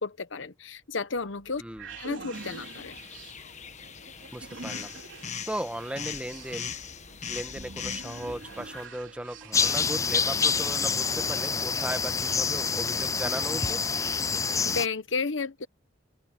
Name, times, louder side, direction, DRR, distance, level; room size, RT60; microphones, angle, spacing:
voice 1, 0.0-1.6 2.0-3.0 14.6-15.7, left 4 dB, 70° left, 1.1 m, -32 dB
sound 1, 1.2-10.2, right 3 dB, 65° right, 4.3 m, -45 dB
sound 2, 2.3-8.9, left 7 dB, 35° left, 1.3 m, -40 dB
voice 2, 4.3-4.9 5.5-6.7 7.3-13.8, right 1 dB, 5° right, 1.5 m, -37 dB
sound 3, 9.5-14.9, left 5 dB, 15° left, 0.3 m, -27 dB
open air
head